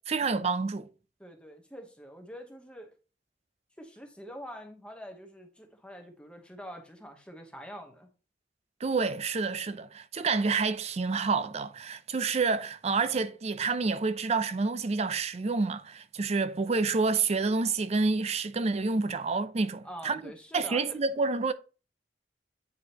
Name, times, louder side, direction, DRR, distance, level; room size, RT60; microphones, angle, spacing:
voice 1, 0.1-0.9 8.8-21.5, right 4 dB, 40° right, 0.5 m, -28 dB
voice 2, 1.2-2.9 3.8-8.1 19.8-21.0, equal, 5° left, 0.9 m, -45 dB
9.2 x 4.8 x 2.8 m
head